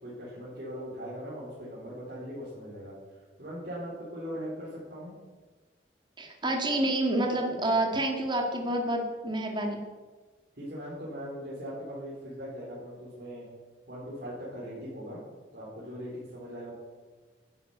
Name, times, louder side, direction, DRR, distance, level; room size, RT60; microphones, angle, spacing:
voice 1, 0.0-2.9 3.4-5.1 10.5-13.5 13.9-15.2 15.5-16.7, equal, 55° right, -8 dB, 4.4 m, -40 dB
voice 2, 6.2-9.8, right 1 dB, 25° right, 2 dB, 2.1 m, -28 dB
11.5 x 11.0 x 8.2 m, 1.3 s
head